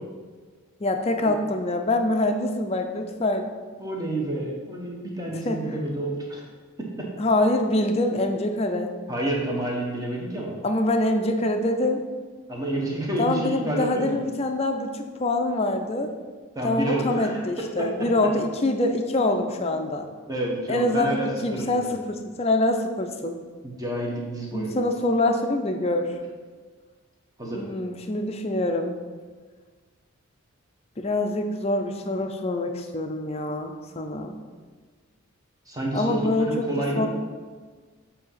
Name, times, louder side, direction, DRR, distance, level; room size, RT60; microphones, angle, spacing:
voice 1, 0.8-3.5 5.5-5.6 7.2-8.9 10.6-12.0 13.2-16.1 16.6-20.1 20.7-21.2 21.4-23.4 24.5-26.2 27.5-29.0 31.0-34.4 35.9-37.1, left 2 dB, 25° left, 5 dB, 0.4 m, -25 dB
voice 2, 3.8-6.4 6.8-7.1 9.1-10.5 12.5-14.1 16.5-17.9 20.3-22.0 23.6-24.7 27.4-27.6 35.7-37.1, right 1 dB, 15° right, -2 dB, 1.0 m, -29 dB
7.7 x 2.8 x 5.6 m, 1.5 s
head